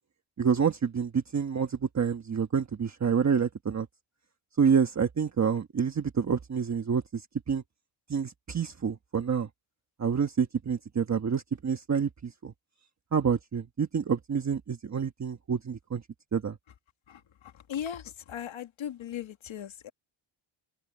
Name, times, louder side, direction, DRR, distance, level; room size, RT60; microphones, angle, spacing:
voice 1, 0.4-3.9 4.6-7.2 7.5-7.6 8.1-9.5 10.0-12.5 13.1-16.0 16.3-16.6, right 6 dB, 35° right, 1.3 m, -28 dB
voice 2, 17.7-18.0 18.3-19.9, left 9 dB, 70° left, 1.8 m, -37 dB
wide cardioid pair, 160°, 49 cm